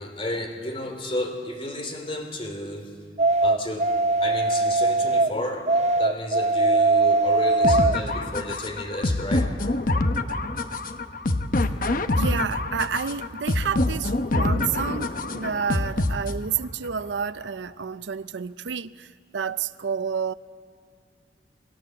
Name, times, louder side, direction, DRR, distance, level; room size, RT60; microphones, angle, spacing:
voice 1, 0.0-2.9 3.4-3.9 4.2-9.5, left 1 dB, 30° left, 5 dB, 3.3 m, -32 dB
sound 1, 3.2-5.3 5.7-8.0, right 2 dB, 35° right, 0.7 m, -20 dB
sound 2, 7.6-16.6, left 2 dB, 45° left, 1.0 m, -25 dB
voice 2, 12.2-20.3, right 6 dB, 75° right, 15 dB, 0.6 m, -30 dB
28.5 x 20.5 x 7.8 m, 2.1 s
head